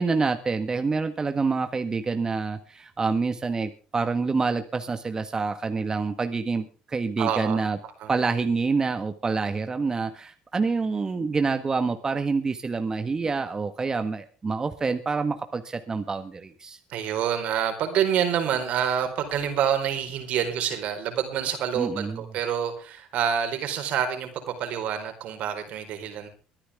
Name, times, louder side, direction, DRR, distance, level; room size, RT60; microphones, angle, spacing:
voice 1, 0.0-7.8 8.1-16.8 21.7-22.2, right 4 dB, 30° right, 8 dB, 1.5 m, -27 dB
voice 2, 7.2-7.6 8.0-8.1 16.9-26.3, right 9 dB, 65° right, 7 dB, 4.3 m, -27 dB
23.0 x 10.0 x 3.6 m, 0.37 s
supercardioid pair, 80°, 2 cm